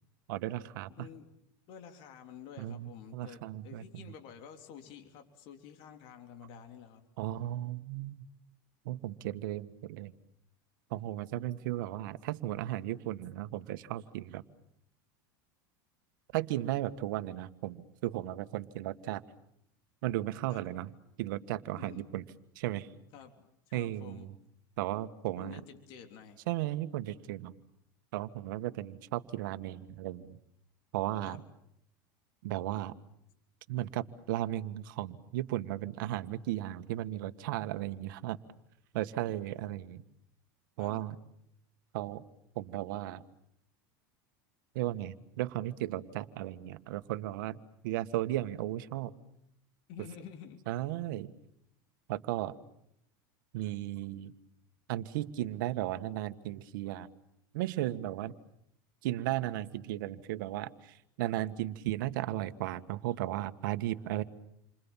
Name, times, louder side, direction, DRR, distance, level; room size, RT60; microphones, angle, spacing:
voice 1, 0.3-0.9 2.6-4.0 7.2-8.2 8.8-10.1 10.9-14.4 16.3-19.2 20.0-20.9 21.2-22.2 22.5-22.9 23.7-24.3 24.8-25.6 26.5-27.5 28.1-30.4 30.9-31.4 32.4-32.9 33.7-38.4 38.9-40.0 40.8-41.1 41.9-42.2 42.5-43.2 44.7-49.1 50.7-51.3 52.1-52.5 53.5-54.3 54.9-57.1 57.5-58.3 59.0-64.2, right 14 dB, 75° right, 12 dB, 1.7 m, -35 dB
voice 2, 1.7-7.0 20.5-20.6 21.8-22.1 23.1-24.3 25.4-26.4 31.2-31.4 40.8-41.0 49.9-50.6, left 8 dB, 55° left, 5 dB, 3.5 m, -50 dB
29.5 x 25.5 x 7.4 m, 0.78 s
supercardioid pair, 135°, 11 cm